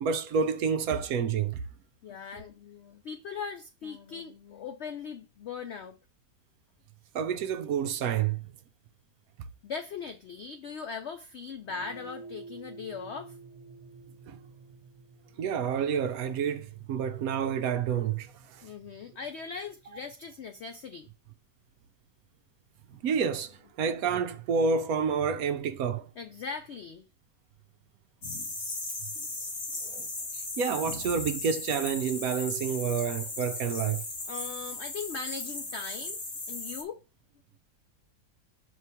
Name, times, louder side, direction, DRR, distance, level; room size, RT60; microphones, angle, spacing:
voice 1, 0.0-1.6 7.1-8.4 14.3-14.4 15.4-18.6 22.9-26.1 29.8-30.1 30.3-34.0, right 6 dB, 70° right, 1.0 m, -29 dB
voice 2, 2.0-6.0 9.6-13.4 18.6-21.1 26.2-27.1 34.3-36.2 36.5-37.0, left 5 dB, 90° left, 0.5 m, -39 dB
sound 1, 11.7-20.1, right 4 dB, 50° right, 1.4 m, -51 dB
sound 2, 28.2-36.8, left 2 dB, 45° left, 1.7 m, -37 dB
6.0 x 3.1 x 5.5 m
omnidirectional pair, 1.8 m